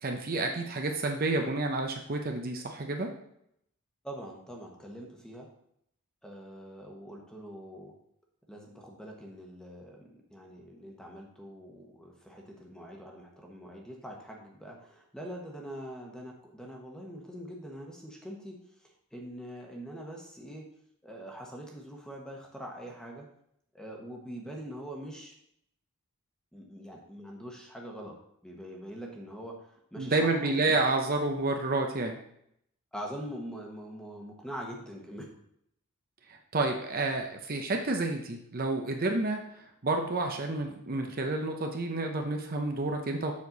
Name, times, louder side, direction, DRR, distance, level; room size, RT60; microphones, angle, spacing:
voice 1, 0.0-3.1 30.0-32.2 36.5-39.4 39.8-43.3, right 2 dB, 40° right, 3 dB, 0.7 m, -29 dB
voice 2, 4.0-5.5 6.2-7.9 8.5-20.6 21.0-23.2 23.7-25.3 26.5-28.2 28.4-30.8 32.9-35.3, equal, 5° left, 0 dB, 1.2 m, -43 dB
7.3 x 6.6 x 4.0 m, 0.73 s
head